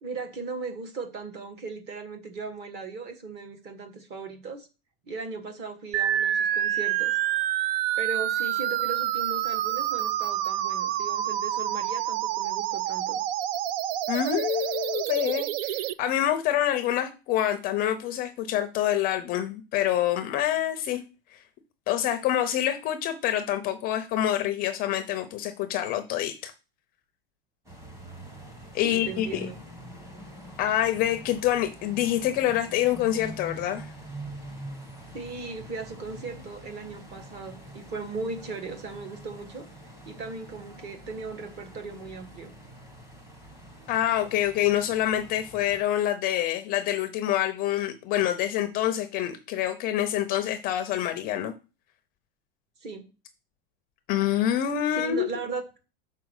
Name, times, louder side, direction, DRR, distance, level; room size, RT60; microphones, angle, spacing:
voice 1, 0.0-4.7 5.1-7.2 8.0-13.2 28.8-29.6 35.1-39.6 40.0-42.5 52.8-53.0 55.0-55.8, right 4 dB, 30° right, 1.4 m, -37 dB
sound 1, 5.9-15.9, right 12 dB, 65° right, 0.5 m, -28 dB
voice 2, 14.1-21.0 21.3-21.4 21.9-26.5 28.7-29.5 30.6-33.9 43.9-51.5 54.1-55.3, left 12 dB, 30° left, 0.5 m, -26 dB
sound 2, 27.7-45.8, right 1 dB, 10° right, 1.3 m, -45 dB
6.0 x 4.3 x 6.4 m
supercardioid pair, 165°, 31 cm